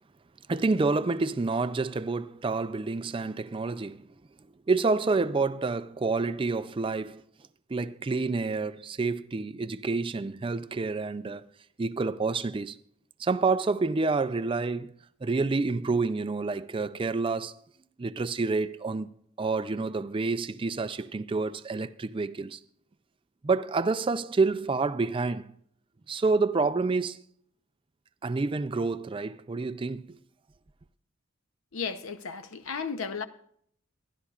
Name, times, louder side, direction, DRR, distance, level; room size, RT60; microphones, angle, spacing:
voice 1, 0.5-4.1 4.7-7.2 7.7-11.4 11.8-12.8 13.2-14.9 15.2-17.6 18.0-19.1 19.4-22.6 23.4-25.5 26.1-27.2 28.2-30.2, right 3 dB, 25° right, 0.4 m, -28 dB
voice 2, 31.7-33.3, left 5 dB, 85° left, 0.8 m, -34 dB
24.5 x 11.0 x 2.4 m
head